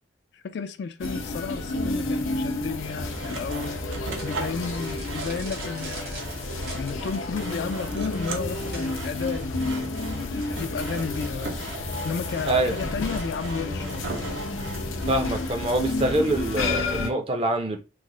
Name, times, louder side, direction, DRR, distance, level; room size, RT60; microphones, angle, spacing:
voice 1, 0.3-6.3 6.7-14.3, left 5 dB, 55° left, 0.3 m, -33 dB
sound 1, 1.0-17.1, left 2 dB, 90° left, 0.7 m, -31 dB
Sawing, 2.8-15.2, right 4 dB, 70° right, 0.7 m, -39 dB
sound 2, 4.2-9.3, right 2 dB, 55° right, 1.0 m, -44 dB
voice 2, 15.1-17.8, right 1 dB, 30° right, 0.5 m, -25 dB
3.2 x 2.1 x 3.7 m
head